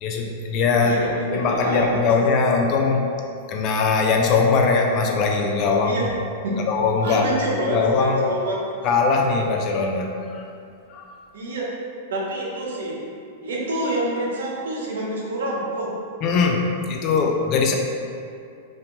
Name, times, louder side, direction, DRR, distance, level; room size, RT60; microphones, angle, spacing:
voice 1, 0.0-1.0 1.3-3.0 3.5-6.0 6.7-7.2 7.7-8.2 8.8-10.4 10.9-11.1 16.2-17.7, left 4 dB, 40° left, 1 dB, 0.3 m, -21 dB
voice 2, 0.7-2.0 5.8-6.0 6.4-6.6 7.0-8.6 11.3-11.7 12.1-13.0 13.4-15.9, right 1 dB, 80° right, -3 dB, 0.6 m, -27 dB
2.6 x 2.1 x 2.9 m, 2.5 s
hypercardioid pair, 125°, 0 cm